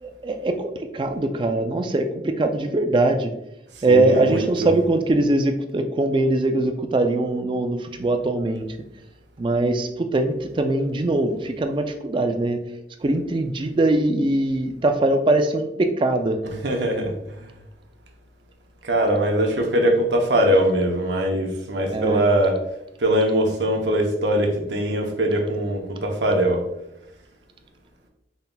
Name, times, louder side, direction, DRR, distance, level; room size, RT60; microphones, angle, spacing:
voice 1, 0.0-3.3 3.8-8.7 9.4-12.6 13.0-16.4 21.9-22.2, right 2 dB, 30° right, 6 dB, 0.3 m, -22 dB
voice 2, 3.8-4.5 16.4-17.5 18.8-22.6 23.0-26.6, right 1 dB, 80° right, 2 dB, 0.7 m, -22 dB
4.0 x 3.8 x 2.2 m, 0.85 s
head